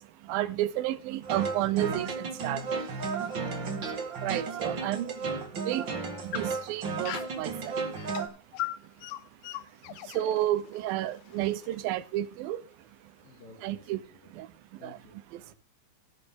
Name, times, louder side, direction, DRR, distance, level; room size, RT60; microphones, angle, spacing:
voice 1, 0.3-2.6 4.2-5.1 5.7-5.9 6.2-7.8 10.1-12.6 13.6-14.0 14.4-14.5 14.8-15.0, right 14 dB, 75° right, 2.3 m, -31 dB
sound 1, 1.2-8.3, right 4 dB, 45° right, 1.7 m, -34 dB
sound 2, 2.6-4.7 5.2-5.3 5.9-7.4 8.0-12.3, left 15 dB, 80° left, 2.3 m, -41 dB
voice 2, 13.2-14.3 14.8-15.6, left 4 dB, 60° left, 3.8 m, -54 dB
17.0 x 9.4 x 3.7 m
omnidirectional pair, 4.9 m